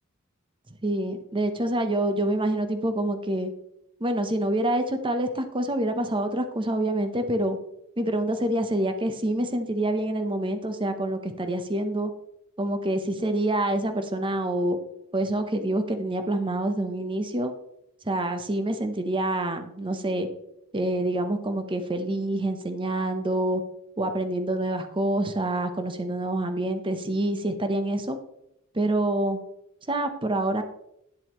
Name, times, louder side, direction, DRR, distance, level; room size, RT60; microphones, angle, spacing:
voice 1, 0.8-3.5 4.0-7.6 8.0-12.1 12.6-14.8 15.1-17.5 18.1-20.3 20.7-23.6 24.0-28.2 28.7-29.4 29.9-30.6, right 1 dB, 25° right, 8 dB, 0.8 m, -26 dB
9.9 x 7.7 x 3.0 m, 0.82 s
head